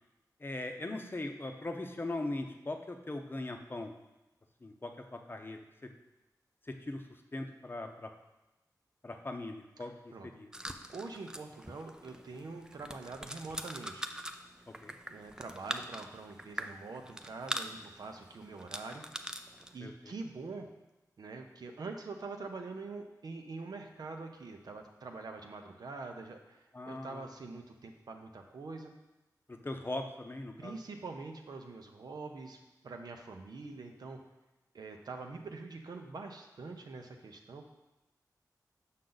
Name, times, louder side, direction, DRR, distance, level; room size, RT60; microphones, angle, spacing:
voice 1, 0.4-3.9 4.6-6.0 6.6-7.0 7.3-8.1 9.0-9.9 10.2-10.5 14.7-14.9 19.8-20.1 26.7-27.3 29.5-30.8, left 2 dB, 30° left, 4 dB, 0.7 m, -40 dB
sound 1, 10.5-19.8, right 1 dB, 10° right, 0.4 m, -43 dB
voice 2, 10.9-14.1 15.1-19.0 19.7-20.7 21.2-28.9 30.6-34.2 34.7-37.7, right 3 dB, 75° right, 3 dB, 0.8 m, -44 dB
6.4 x 5.7 x 3.9 m, 1.0 s
wide cardioid pair, 70°, 7 cm